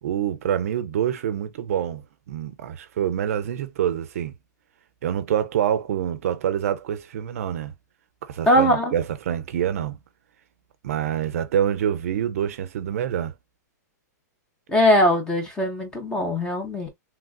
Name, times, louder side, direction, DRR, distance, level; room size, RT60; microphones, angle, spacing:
voice 1, 0.0-4.3 5.0-7.7 8.2-10.0 10.8-13.3, right 9 dB, 50° right, 0.5 m, -26 dB
voice 2, 8.5-8.9 14.7-16.9, equal, 10° left, 0.5 m, -20 dB
3.2 x 2.4 x 2.2 m
hypercardioid pair, 170°, 10 cm